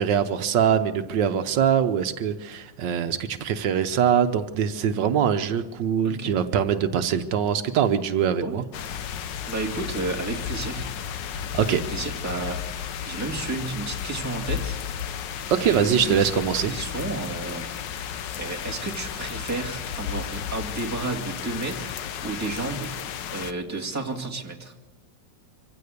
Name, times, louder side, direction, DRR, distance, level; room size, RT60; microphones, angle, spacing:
voice 1, 0.0-8.6 11.5-11.8 15.5-16.7, right 8 dB, 80° right, 9 dB, 1.6 m, -23 dB
voice 2, 6.0-6.4 8.4-8.6 9.5-10.9 11.5-12.6 13.1-14.8 15.6-16.3 16.6-17.7 18.4-22.9 23.3-24.7, right 3 dB, 10° right, -1 dB, 2.2 m, -32 dB
sound 1, 8.7-23.5, left 8 dB, 80° left, 1.5 m, -33 dB
25.0 x 16.5 x 6.6 m, 1.2 s
omnidirectional pair, 1.9 m